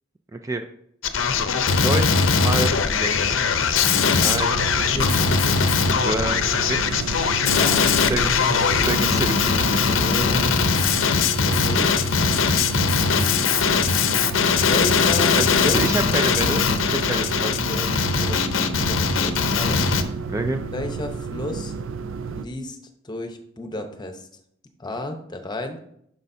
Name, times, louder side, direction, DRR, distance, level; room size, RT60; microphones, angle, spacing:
voice 1, 0.3-0.6 1.8-3.4 4.2-4.9 6.0-6.4 6.7-7.1 8.1-8.4 8.8-10.0 15.4-16.6 16.9-17.6 20.3-20.6, right 2 dB, 15° right, 6 dB, 0.4 m, -28 dB
Male speech man speaking, 1.0-20.0, left 5 dB, 75° left, 0.6 m, -20 dB
sound 1, 2.7-9.4, right 1 dB, 40° right, 1.3 m, -41 dB
sound 2, 4.1-22.4, right 5 dB, 75° right, 0.4 m, -32 dB
voice 2, 4.9-5.7 7.4-7.9 10.0-10.7 11.4-11.9 12.5-13.4 14.6-15.8 17.6-17.9 18.1-19.8 20.7-21.7 22.4-22.8 23.0-24.3 24.8-25.8, left 1 dB, 20° left, 6 dB, 0.8 m, -32 dB
9.7 x 6.4 x 2.7 m, 0.71 s
head